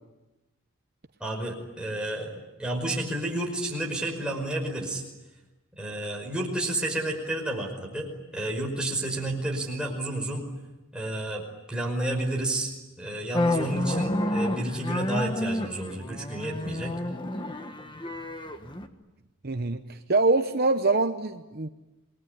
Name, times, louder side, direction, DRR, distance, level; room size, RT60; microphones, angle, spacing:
voice 1, 1.2-2.3 2.6-5.0 5.8-10.5 10.9-12.7 13.0-17.0, right 1 dB, 5° right, 0 dB, 5.4 m, -31 dB
sound 1, 13.3-18.9, left 1 dB, 20° left, 1.4 m, -30 dB
voice 2, 19.4-21.7, right 3 dB, 45° right, 7 dB, 0.9 m, -24 dB
28.5 x 21.0 x 9.9 m, 1.1 s
head